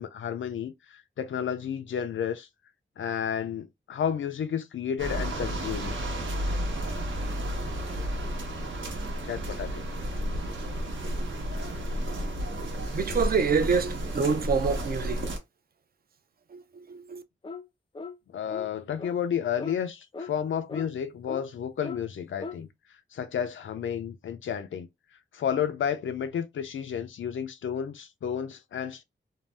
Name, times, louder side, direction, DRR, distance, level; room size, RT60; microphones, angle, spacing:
voice 1, 0.0-2.5 3.0-6.0 9.3-9.9 18.3-22.7 23.1-24.9 25.3-29.0, left 8 dB, 85° left, 0.4 m, -31 dB
sound 1, 5.0-15.4, equal, 80° right, 0.9 m, -32 dB
voice 2, 12.5-15.3 16.5-17.2, right 5 dB, 50° right, 0.4 m, -27 dB
sound 2, 17.4-17.7 18.0-18.2 18.5-18.7 19.0-19.2 19.6-19.8 20.1-20.3 20.7-20.9 21.3-21.4 21.8-22.0 22.4-22.6, left 4 dB, 25° left, 0.4 m, -38 dB
2.6 x 2.0 x 3.2 m
wide cardioid pair, 145°, 20 cm